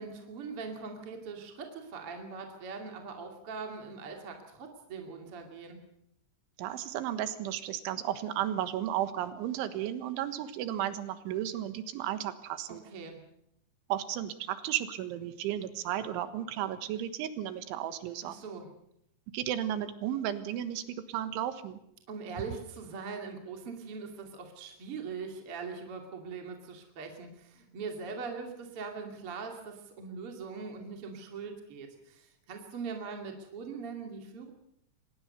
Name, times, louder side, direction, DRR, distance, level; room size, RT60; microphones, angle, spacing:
voice 1, 0.0-5.8 12.7-13.2 18.2-18.7 22.1-34.5, right 5 dB, 35° right, 3 dB, 2.8 m, -41 dB
voice 2, 6.6-12.8 13.9-18.4 19.3-21.8, right 11 dB, 90° right, 11 dB, 3.8 m, -34 dB
24.5 x 19.5 x 6.8 m, 0.75 s
omnidirectional pair, 5.3 m